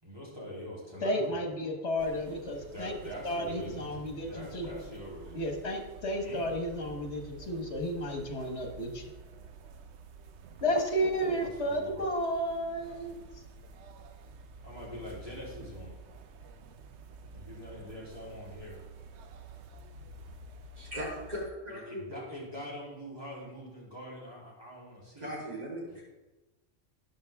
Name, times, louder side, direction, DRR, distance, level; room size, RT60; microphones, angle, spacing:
voice 1, 0.0-1.4 2.1-2.2 2.5-5.5 6.2-6.4 11.2-12.1 14.6-16.0 17.3-18.8 21.7-25.3, equal, 20° right, -6 dB, 3.5 m, -44 dB
voice 2, 1.0-2.9 3.2-4.7 5.3-9.1 10.6-13.2, equal, 80° left, 4 dB, 1.7 m, -32 dB
sound 1, 2.0-21.5, right 3 dB, 90° right, 1.0 m, -50 dB
voice 3, 20.7-22.1 25.2-26.0, equal, 40° right, -6 dB, 4.1 m, -38 dB
13.0 x 9.9 x 3.5 m, 1.1 s
omnidirectional pair, 1.1 m